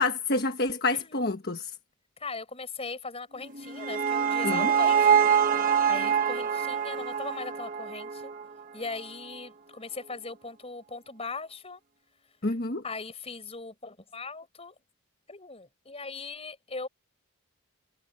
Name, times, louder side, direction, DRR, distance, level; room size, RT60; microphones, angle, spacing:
voice 1, 0.0-1.7 4.4-4.7 12.4-12.8, left 3 dB, 45° left, 1.4 m, -28 dB
voice 2, 2.2-5.2 5.7-8.3 8.7-11.8 12.8-14.7 15.3-16.9, left 4 dB, 25° left, 5.4 m, -39 dB
sound 1, 3.4-8.6, right 7 dB, 35° right, 1.5 m, -25 dB
head